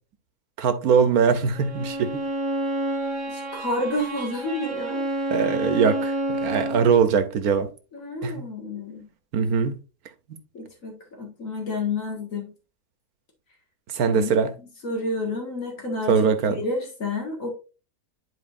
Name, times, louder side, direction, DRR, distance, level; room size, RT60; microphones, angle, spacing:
voice 1, 0.6-2.2 5.3-7.7 8.2-8.3 9.3-9.8 13.9-14.5 16.1-16.6, right 6 dB, 90° right, 1.4 m, -21 dB
Bowed string instrument, 1.5-6.9, right 1 dB, 20° right, 1.1 m, -29 dB
voice 2, 3.3-5.0 7.9-9.1 10.5-12.5 14.1-14.3 14.8-16.2 16.6-17.5, left 2 dB, 65° left, 2.2 m, -30 dB
11.0 x 4.4 x 2.6 m
omnidirectional pair, 1.5 m